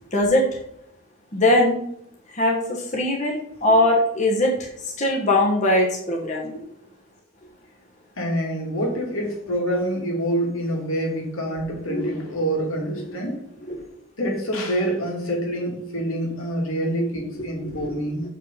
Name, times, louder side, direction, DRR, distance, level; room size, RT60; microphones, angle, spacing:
voice 1, 0.1-0.4 1.3-1.8 2.3-4.7 5.0-6.5 11.9-12.1 13.7-13.8 17.6-17.9, left 1 dB, 35° left, -1 dB, 1.3 m, -21 dB
voice 2, 8.2-13.4 14.2-18.2, right 1 dB, 85° left, -1 dB, 2.8 m, -26 dB
6.9 x 5.4 x 5.7 m, 0.74 s
head